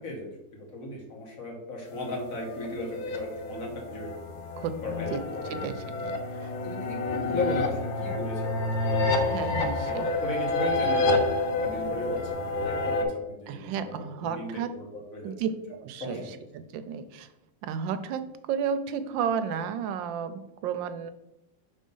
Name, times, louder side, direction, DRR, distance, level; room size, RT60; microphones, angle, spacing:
voice 1, 0.0-4.1 4.8-5.7 6.4-11.2 11.5-15.3 16.0-16.3, left 2 dB, 50° left, 0 dB, 1.6 m, -36 dB
sound 1, 2.0-13.0, left 2 dB, 85° left, 1.5 m, -29 dB
voice 2, 5.5-6.2 9.1-10.1 13.5-14.7 15.2-17.3 17.6-21.1, right 7 dB, 90° right, 11 dB, 1.3 m, -32 dB
5.2 x 3.8 x 5.4 m, 0.85 s
omnidirectional pair, 2.0 m